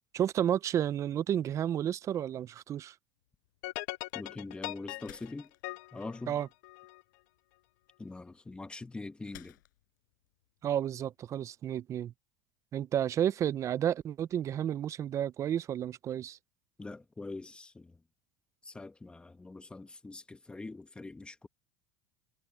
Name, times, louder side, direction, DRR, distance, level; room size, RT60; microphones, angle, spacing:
voice 1, 0.1-2.9 6.3-6.5 10.6-12.1 12.7-16.4, right 10 dB, 30° right, 0.5 m, -31 dB
sound 1, 3.2-11.4, left 17 dB, 85° left, 7.7 m, -61 dB
sound 2, 3.6-7.0, left 21 dB, 70° left, 1.1 m, -41 dB
voice 2, 4.1-5.5 5.9-6.4 8.0-9.6 16.8-18.0 18.6-21.5, left 3 dB, 10° left, 1.7 m, -43 dB
supercardioid pair, 130°, 10 cm